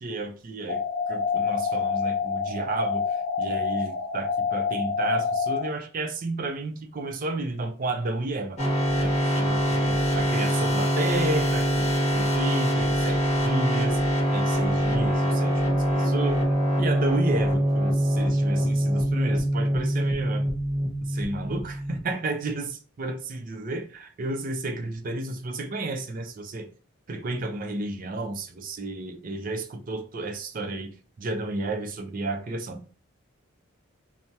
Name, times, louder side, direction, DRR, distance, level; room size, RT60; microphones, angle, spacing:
voice 1, 0.0-8.6 9.0-14.0 14.3-16.5 16.8-20.5 21.0-26.7 27.1-30.9 31.2-32.8, right 2 dB, 40° right, 0.4 m, -32 dB
sound 1, 0.7-5.7, left 5 dB, 50° left, 0.5 m, -27 dB
sound 2, 8.6-22.1, equal, 30° left, 1.0 m, -24 dB
2.8 x 2.0 x 3.3 m
head